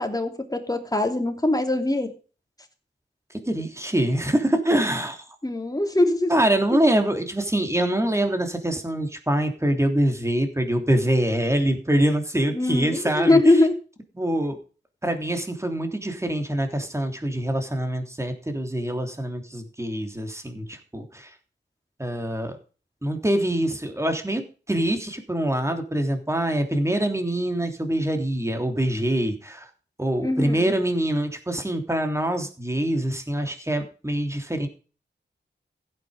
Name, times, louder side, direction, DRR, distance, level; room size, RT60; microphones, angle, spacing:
voice 1, 0.0-2.1 5.4-6.3 6.7-6.8 12.5-13.8 30.2-30.7, left 2 dB, 20° left, 5 dB, 3.0 m, -22 dB
voice 2, 3.5-5.2 6.3-13.4 14.2-14.6 15.0-21.3 22.0-22.6 23.0-29.6 30.0-34.7, right 1 dB, 15° right, 5 dB, 3.2 m, -24 dB
15.5 x 9.1 x 5.2 m, 0.36 s
wide cardioid pair, 70°, 20 cm